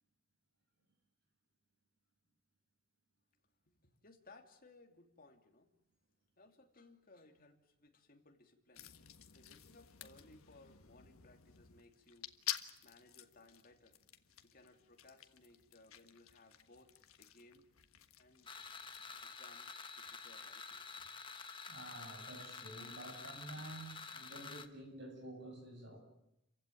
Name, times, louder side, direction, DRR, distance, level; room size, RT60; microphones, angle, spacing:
voice 1, 3.7-5.7 6.4-8.9 9.3-14.0 14.4-17.7 18.2-18.5 19.2-21.1, left 2 dB, 40° left, 4 dB, 2.8 m, -63 dB
sound 1, 8.7-19.3, left 11 dB, 90° left, 1.5 m, -50 dB
sound 2, 18.5-24.7, left 5 dB, 25° left, 1.2 m, -49 dB
voice 2, 21.7-26.0, right 1 dB, 55° right, 3 dB, 7.9 m, -50 dB
29.0 x 16.0 x 9.3 m, 0.83 s
head